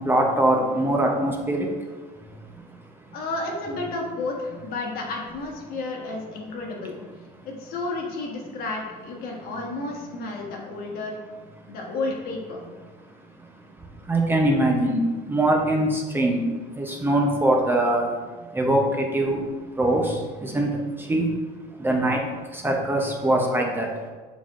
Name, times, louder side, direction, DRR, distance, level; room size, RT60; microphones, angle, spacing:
voice 1, 0.0-3.1 7.4-7.5 13.4-21.3 21.8-24.1, right 1 dB, 10° right, 0 dB, 0.7 m, -24 dB
voice 2, 3.1-7.0 7.4-11.2 11.7-12.6, left 2 dB, 60° left, 0 dB, 1.4 m, -31 dB
7.2 x 5.4 x 2.5 m, 1.4 s
cardioid pair, 140°, 17 cm